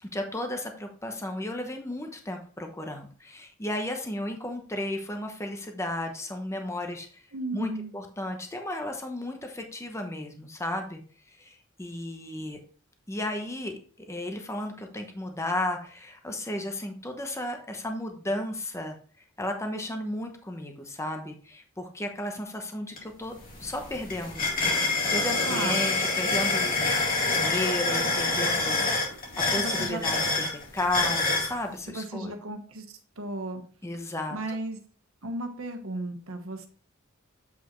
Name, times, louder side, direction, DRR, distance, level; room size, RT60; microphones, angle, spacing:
voice 1, 0.0-7.2 7.5-11.0 11.3-12.6 13.1-19.0 19.4-24.5 25.1-28.9 29.5-32.3 33.8-34.6, left 1 dB, 15° left, 4 dB, 0.9 m, -34 dB
voice 2, 7.3-8.0 25.4-25.8 29.6-30.0 31.9-32.8 33.2-33.6 34.3-34.8 35.2-36.7, right 2 dB, 90° right, 5 dB, 1.3 m, -34 dB
sound 1, 23.0-23.1 23.4-31.5, left 3 dB, 45° left, 2.5 m, -26 dB
8.2 x 4.9 x 3.1 m, 0.41 s
head